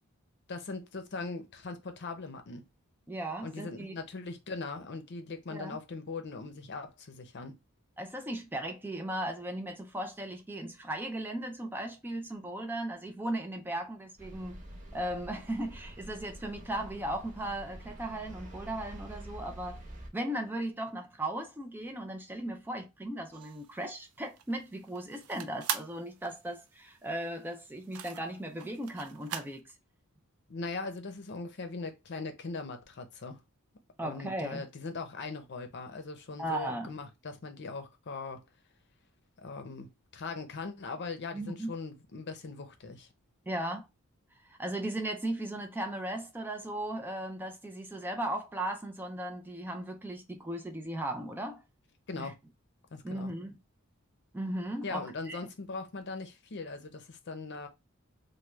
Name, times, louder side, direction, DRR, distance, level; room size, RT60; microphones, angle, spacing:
voice 1, 0.5-2.6 3.4-7.5 30.5-33.4 34.0-38.4 39.4-43.1 52.1-52.3 52.9-53.3 54.8-57.7, left 3 dB, 55° left, 0.6 m, -40 dB
voice 2, 3.1-3.9 5.5-5.8 8.0-14.6 14.9-19.8 20.1-29.7 34.0-34.6 36.4-36.9 41.3-41.7 43.5-43.9 44.6-51.6 52.2-52.3 53.0-53.5 54.3-55.4, right 1 dB, 10° right, 0.3 m, -37 dB
sound 1, 14.2-20.1, right 1 dB, 35° right, 1.0 m, -47 dB
View Master Sounds, 23.3-29.6, right 9 dB, 80° right, 0.4 m, -41 dB
3.3 x 2.2 x 3.0 m
head